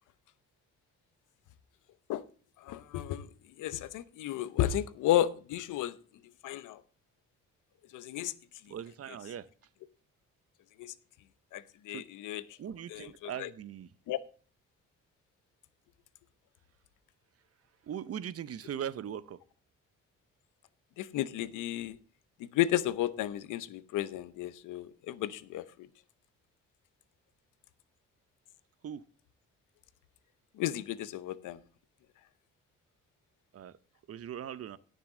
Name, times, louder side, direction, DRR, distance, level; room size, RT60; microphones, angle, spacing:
voice 1, 2.6-3.3 3.6-5.9 6.4-6.8 7.9-8.3 10.8-10.9 11.5-12.4 12.9-13.5 14.1-14.2 21.0-22.0 22.4-25.6 30.6-31.6, left 12 dB, 85° left, 0.9 m, -33 dB
voice 2, 8.7-9.5 11.9-12.0 12.6-13.9 17.8-19.4 28.8-29.0 33.5-33.8 34.1-34.8, right 9 dB, 50° right, 0.8 m, -40 dB
17.0 x 6.6 x 3.8 m
cardioid pair, 90°, 30 cm